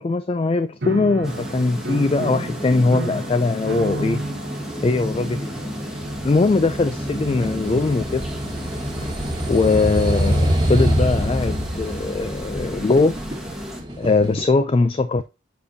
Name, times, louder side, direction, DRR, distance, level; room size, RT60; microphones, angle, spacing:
voice 1, 0.0-4.2 4.8-5.5 6.2-8.3 9.0-9.1 9.5-13.2 14.0-15.2, left 3 dB, 30° left, 0.3 m, -20 dB
Piano, 0.8-7.6, right 2 dB, 60° right, 0.8 m, -33 dB
sound 1, 1.2-13.8, equal, 5° right, 1.2 m, -33 dB
sound 2, 3.1-14.4, equal, 25° right, 1.4 m, -26 dB
7.4 x 5.2 x 2.7 m
head